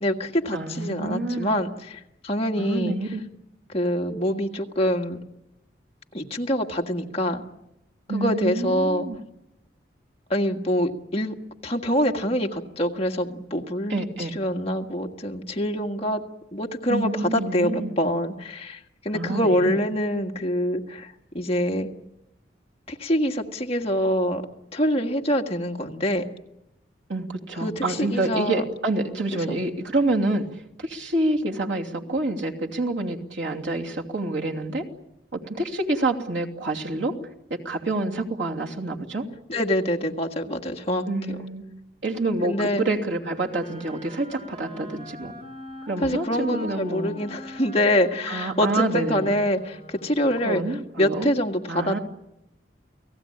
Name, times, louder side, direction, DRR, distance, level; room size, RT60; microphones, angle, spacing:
voice 1, 0.0-3.0 3.7-5.2 6.1-7.4 8.1-9.1 10.3-11.3 11.6-16.2 16.5-21.9 22.9-24.4 24.7-26.2 27.6-28.6 29.3-29.6 39.5-41.4 42.4-42.9 46.0-50.6 51.0-52.0, equal, 30° left, 2 dB, 1.7 m, -25 dB
voice 2, 0.5-1.5 2.6-3.2 8.1-9.2 13.9-14.3 16.9-17.9 19.1-19.8 27.1-34.9 35.3-37.2 37.5-39.3 41.1-41.6 42.0-45.3 45.8-47.1 48.3-49.3 50.4-51.3 51.7-52.0, right 2 dB, 80° right, 0 dB, 3.0 m, -27 dB
Wind instrument woodwind instrument, 43.1-50.5, left 1 dB, 30° right, 3.1 m, -42 dB
30.0 x 18.5 x 8.7 m, 0.88 s
head